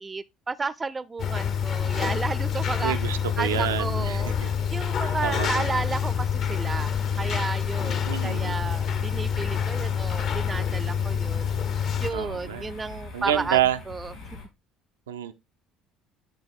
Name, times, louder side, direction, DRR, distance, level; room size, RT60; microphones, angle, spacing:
voice 1, 0.0-2.9 3.4-11.4 12.0-13.6 13.9-14.1, right 4 dB, 25° right, 0.4 m, -32 dB
sound 1, 1.2-12.1, left 8 dB, 55° left, 0.7 m, -27 dB
sound 2, 1.4-14.4, left 4 dB, 75° left, 3.1 m, -40 dB
voice 2, 2.8-4.5 5.0-5.6 8.1-8.6 12.1-12.7 13.1-13.8 15.1-15.3, right 11 dB, 90° right, 0.4 m, -28 dB
10.5 x 3.5 x 3.5 m
hypercardioid pair, 70°, 0 cm